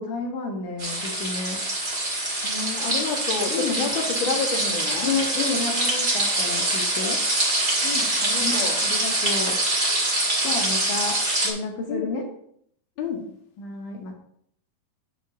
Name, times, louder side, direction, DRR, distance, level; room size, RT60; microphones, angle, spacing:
voice 1, 0.0-1.6 3.5-3.8 5.0-7.2 8.4-8.5 8.8-9.6 10.4-12.3 13.6-14.1, left 4 dB, 70° left, 0 dB, 2.1 m, -30 dB
sound 1, 0.8-11.5, right 2 dB, 30° right, 1.5 m, -24 dB
voice 2, 2.4-5.1 7.8-8.8 11.9-12.1 13.0-13.2, left 4 dB, 50° left, -1 dB, 1.4 m, -29 dB
5.7 x 5.0 x 6.6 m, 0.68 s
omnidirectional pair, 4.4 m